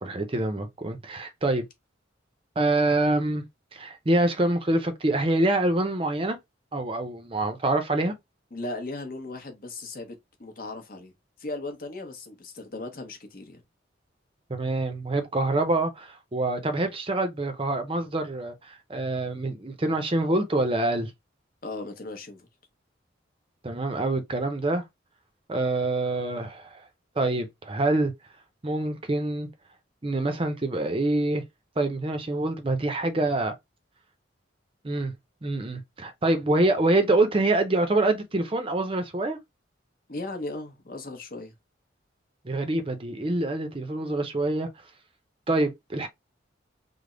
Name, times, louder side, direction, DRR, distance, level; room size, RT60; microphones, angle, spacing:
voice 1, 0.0-1.6 2.6-3.4 3.7-6.4 6.7-8.1 14.5-21.1 23.6-24.8 25.5-26.8 27.2-28.1 28.6-29.5 30.0-31.4 31.8-33.5 34.8-35.1 35.4-39.4 42.4-44.7 45.5-46.1, right 2 dB, 30° right, 0.5 m, -26 dB
voice 2, 8.5-11.1 11.4-13.6 21.6-22.5 40.1-41.5, left 2 dB, 50° left, 0.9 m, -37 dB
3.4 x 2.0 x 3.7 m
head